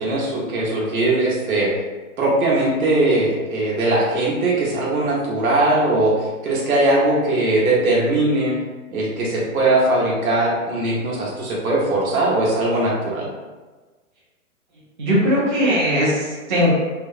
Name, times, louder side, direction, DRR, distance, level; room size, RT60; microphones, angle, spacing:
voice 1, 0.0-1.7 2.2-8.5 8.9-13.3, right 2 dB, 85° right, -4 dB, 1.0 m, -20 dB
voice 2, 15.0-16.7, equal, 35° right, -8 dB, 0.5 m, -19 dB
3.2 x 2.0 x 2.4 m, 1.3 s
hypercardioid pair, 175°, 42 cm